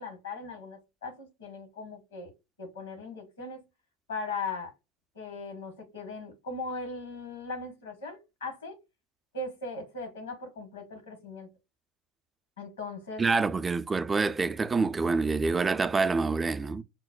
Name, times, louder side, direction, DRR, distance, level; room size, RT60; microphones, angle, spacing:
voice 1, 0.0-2.3 2.6-3.7 4.1-4.7 5.1-8.8 9.3-11.5 12.6-13.2, left 3 dB, 90° left, 1.2 m, -39 dB
voice 2, 13.2-16.8, right 4 dB, 20° right, 0.4 m, -26 dB
5.8 x 2.1 x 2.3 m
hypercardioid pair, 80°, 0 cm